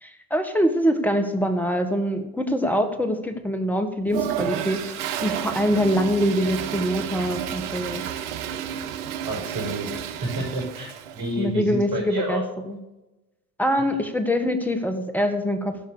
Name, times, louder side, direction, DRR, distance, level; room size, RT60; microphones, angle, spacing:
voice 1, 0.0-8.0 11.4-12.8 13.6-15.7, equal, 5° left, 6 dB, 1.8 m, -24 dB
Toilet flush, 4.1-11.3, right 9 dB, 65° right, 1.0 m, -31 dB
voice 2, 9.3-9.9 10.1-12.4, right 1 dB, 50° right, 2 dB, 5.5 m, -29 dB
16.0 x 5.7 x 6.9 m, 1.0 s
hypercardioid pair, 70°, 49 cm